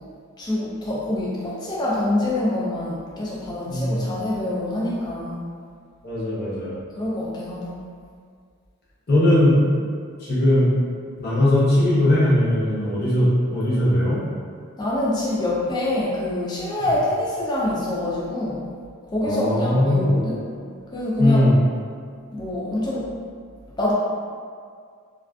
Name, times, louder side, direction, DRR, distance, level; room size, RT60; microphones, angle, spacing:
voice 1, 0.4-5.4 7.0-7.8 14.8-18.7 19.1-20.4 20.9-21.5 22.3-23.1 23.8-23.9, left 1 dB, 20° left, -6 dB, 0.3 m, -25 dB
voice 2, 3.7-4.1 6.0-6.8 9.1-9.6 10.2-10.7 11.2-14.2 19.2-20.2 21.2-21.6, left 1 dB, 45° left, -8 dB, 0.7 m, -19 dB
2.4 x 2.4 x 2.2 m, 2.1 s
head